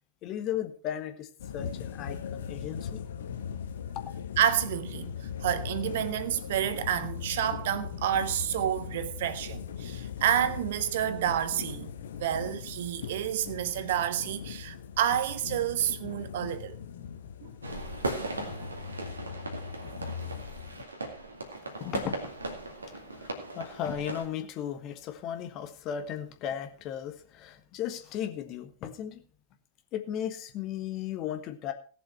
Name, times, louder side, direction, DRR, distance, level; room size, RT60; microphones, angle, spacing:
voice 1, 0.2-3.0 3.9-4.1 21.8-22.3 23.1-29.2 29.9-31.7, left 10 dB, 40° left, 1.5 m, -36 dB
sound 1, 1.4-20.8, left 8 dB, 60° left, 1.1 m, -39 dB
voice 2, 4.4-5.1 5.4-16.8 17.4-17.5, right 10 dB, 55° right, 1.0 m, -29 dB
sound 2, 17.6-24.2, right 2 dB, 75° right, 2.2 m, -37 dB
17.5 x 7.2 x 4.4 m
figure-of-eight pair, 90°, 0 cm